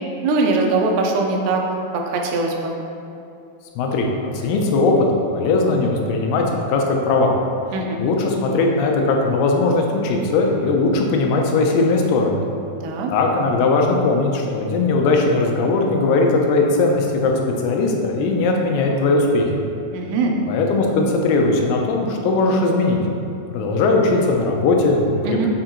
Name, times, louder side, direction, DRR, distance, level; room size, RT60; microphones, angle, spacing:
voice 1, 0.2-1.6 1.9-2.7 7.7-8.0 12.8-13.1 19.9-20.3 25.2-25.5, right 3 dB, 85° right, 1 dB, 2.6 m, -21 dB
voice 2, 3.8-5.1 5.3-7.3 8.0-12.4 13.1-17.3 17.6-19.6 20.5-23.0 23.5-25.5, left 3 dB, 90° left, 1 dB, 2.7 m, -19 dB
7.2 x 3.8 x 4.4 m, 2.6 s
omnidirectional pair, 4.4 m